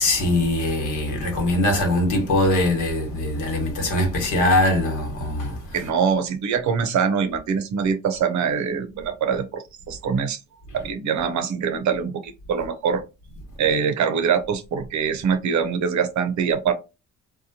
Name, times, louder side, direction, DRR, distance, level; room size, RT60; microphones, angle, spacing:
voice 1, 0.0-5.6, left 1 dB, 80° left, 1.3 m, -22 dB
voice 2, 5.7-10.4 10.7-13.0 13.6-16.7, right 6 dB, 70° right, 0.7 m, -23 dB
2.8 x 2.2 x 2.7 m
cardioid pair, 90°, 30 cm